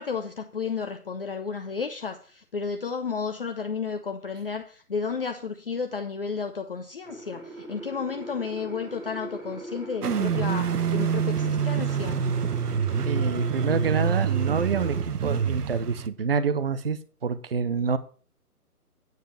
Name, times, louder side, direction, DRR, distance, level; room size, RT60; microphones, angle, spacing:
voice 1, 0.0-12.2, left 5 dB, 40° left, 6 dB, 0.7 m, -32 dB
sound 1, 7.0-15.0, right 1 dB, 10° right, 1.7 m, -40 dB
sound 2, 10.0-16.1, right 7 dB, 80° right, 1.0 m, -26 dB
voice 2, 13.1-18.0, right 5 dB, 40° right, 14 dB, 0.6 m, -27 dB
9.3 x 5.1 x 7.2 m, 0.41 s
hypercardioid pair, 160°, 46 cm